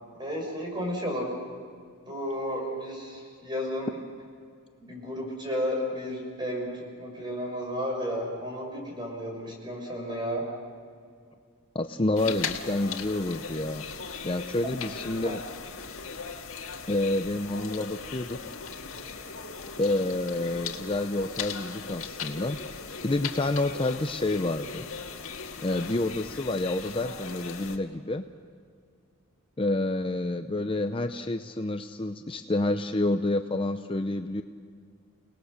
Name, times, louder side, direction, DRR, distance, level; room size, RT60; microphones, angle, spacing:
voice 1, 0.1-1.3 2.0-4.0 4.8-10.5 15.2-15.4, equal, 20° right, 0 dB, 5.9 m, -33 dB
voice 2, 11.7-13.8 14.2-15.4 16.9-18.4 19.8-22.6 23.0-24.9 25.6-28.3 29.6-34.4, left 2 dB, 25° left, 7 dB, 0.6 m, -28 dB
sound 1, 12.2-27.8, left 5 dB, 80° left, 1.8 m, -38 dB
29.5 x 19.5 x 6.5 m, 2.2 s
head